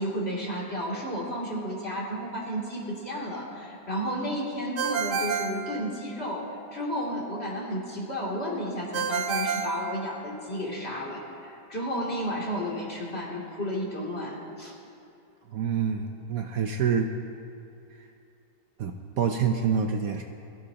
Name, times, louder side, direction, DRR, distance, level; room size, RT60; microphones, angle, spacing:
voice 1, 0.0-14.8, equal, 35° left, -5 dB, 3.0 m, -32 dB
Ringtone, 4.8-6.4 8.9-10.6, right 5 dB, 85° right, 1.6 m, -30 dB
voice 2, 15.5-17.1 18.0-18.1 18.8-20.2, right 7 dB, 65° right, 4 dB, 1.1 m, -27 dB
22.0 x 15.5 x 2.9 m, 2.6 s
omnidirectional pair, 1.8 m